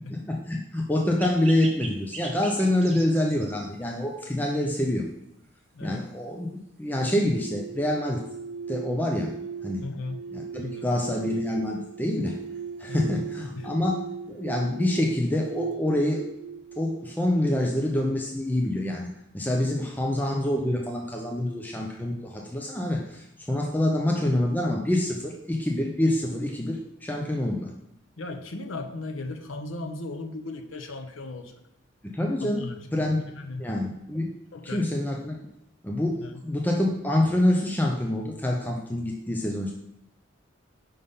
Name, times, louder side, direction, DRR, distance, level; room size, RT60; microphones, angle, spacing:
voice 1, 0.3-5.1 5.8-8.2 8.7-9.3 9.6-9.8 10.3-12.4 12.8-14.0 14.3-16.2 16.8-27.7 32.1-33.2 33.6-34.3 34.7-35.4 35.8-39.7, left 1 dB, 10° left, 0 dB, 0.5 m, -26 dB
sound 1, 1.2-3.7, right 3 dB, 30° right, 1.0 m, -40 dB
voice 2, 5.7-6.1 9.8-10.2 10.6-10.9 12.9-13.2 13.6-13.7 28.2-31.5 32.4-33.1 33.3-33.6 34.5-34.9 36.2-36.4, left 2 dB, 85° left, 6 dB, 0.7 m, -37 dB
sound 2, 6.9-17.9, right 5 dB, 60° right, 0.4 m, -38 dB
5.4 x 3.5 x 5.4 m, 0.85 s
head